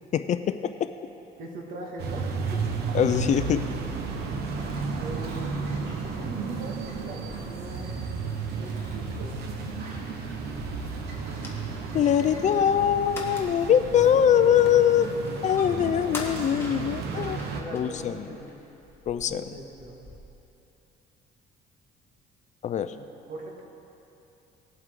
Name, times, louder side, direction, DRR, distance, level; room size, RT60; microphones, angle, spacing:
voice 1, 0.1-0.9 2.9-3.7 11.9-15.1 15.4-17.4 17.7-18.3 19.1-19.5 22.6-22.9, left 9 dB, 45° left, 11 dB, 0.4 m, -23 dB
voice 2, 1.4-2.6 4.9-5.5 6.0-8.0 8.4-9.4 16.7-17.2 17.5-18.6 19.2-20.0 22.9-23.0 23.3-23.7, right 2 dB, 55° right, 0 dB, 2.1 m, -41 dB
sound 1, 2.0-17.6, right 4 dB, 70° right, 1.2 m, -33 dB
sound 2, 4.6-12.6, right 1 dB, 90° right, 3.0 m, -51 dB
sound 3, 7.4-20.2, left 2 dB, 15° left, 1.6 m, -46 dB
19.0 x 7.9 x 3.8 m, 2.9 s
cardioid pair, 110°, 17 cm